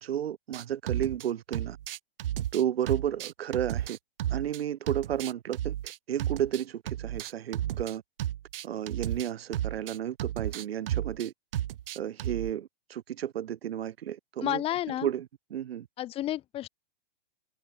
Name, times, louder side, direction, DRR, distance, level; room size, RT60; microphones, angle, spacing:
voice 1, 0.0-1.8 2.5-4.0 4.3-8.0 8.6-11.3 12.0-14.6 15.0-15.9, right 10 dB, 80° right, 3.3 m, -32 dB
sound 1, 0.5-1.3 1.5-4.6 4.9-12.5, right 12 dB, 65° right, 3.8 m, -33 dB
voice 2, 14.4-15.1 16.0-16.7, left 13 dB, 20° left, 1.7 m, -31 dB
supercardioid pair, 165°, 30 cm